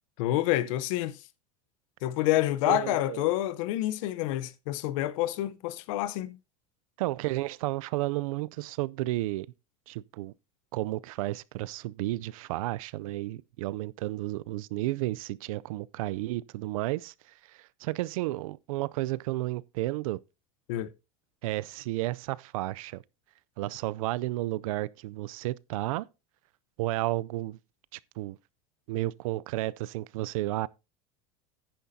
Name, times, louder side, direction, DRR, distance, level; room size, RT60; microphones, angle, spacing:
voice 1, 0.2-1.2 2.0-6.4 20.7-20.9, left 14 dB, 70° left, 0.9 m, -28 dB
voice 2, 2.6-3.3 7.0-9.5 9.9-10.3 10.7-17.1 17.5-20.2 21.4-23.0 23.6-26.1 26.8-27.6 27.9-28.4 28.9-30.7, right 17 dB, 80° right, 0.5 m, -32 dB
10.5 x 10.0 x 2.7 m
supercardioid pair, 145°, 17 cm